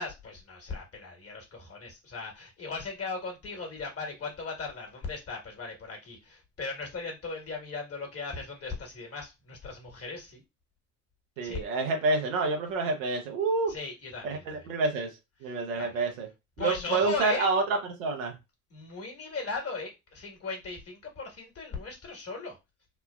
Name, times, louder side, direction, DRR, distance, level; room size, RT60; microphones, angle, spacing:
voice 1, 0.0-10.4 11.4-11.6 13.7-14.7 15.5-16.0 16.6-17.5 18.7-22.6, left 4 dB, 35° left, 1.3 m, -37 dB
voice 2, 11.4-13.7 14.2-15.1 15.4-16.3 16.6-18.3, right 3 dB, 85° right, 0.8 m, -28 dB
3.1 x 2.2 x 2.2 m
hypercardioid pair, 55°, 38 cm